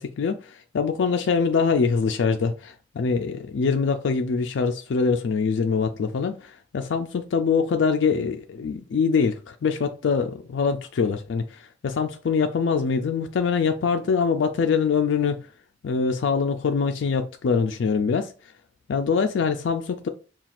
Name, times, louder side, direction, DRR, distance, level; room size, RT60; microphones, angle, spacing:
voice 1, 0.0-15.5 15.8-18.5 18.9-20.1, left 5 dB, 75° left, 0.4 m, -24 dB
5.7 x 2.3 x 2.4 m
head